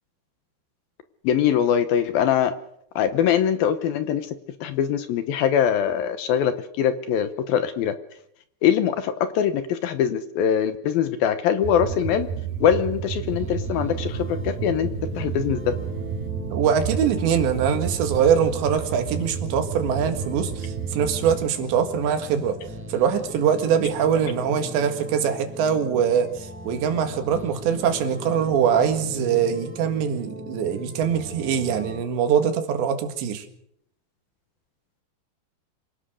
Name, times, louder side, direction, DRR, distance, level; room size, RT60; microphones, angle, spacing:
voice 1, 1.2-2.5 3.0-4.4 4.6-7.9 8.6-12.3 12.6-14.9 15.2-15.7, left 9 dB, 70° left, 2.5 m, -22 dB
sound 1, 11.6-21.5, right 7 dB, 70° right, 2.7 m, -31 dB
sound 2, 13.4-32.0, equal, 5° right, 4.8 m, -38 dB
voice 2, 16.5-22.6 22.9-33.5, right 8 dB, 85° right, 4.1 m, -23 dB
26.0 x 17.0 x 6.5 m
omnidirectional pair, 5.0 m